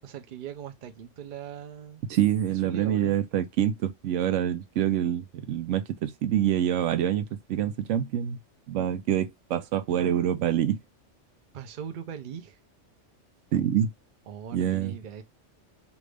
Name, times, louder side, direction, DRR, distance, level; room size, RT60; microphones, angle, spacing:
voice 1, 0.0-2.1 2.5-3.2 11.5-12.6 14.3-15.2, right 8 dB, 50° right, 0.7 m, -40 dB
voice 2, 2.1-8.4 8.7-10.8 13.5-13.9 14.5-14.9, right 10 dB, 80° right, 0.9 m, -26 dB
3.4 x 2.5 x 3.2 m
omnidirectional pair, 1.3 m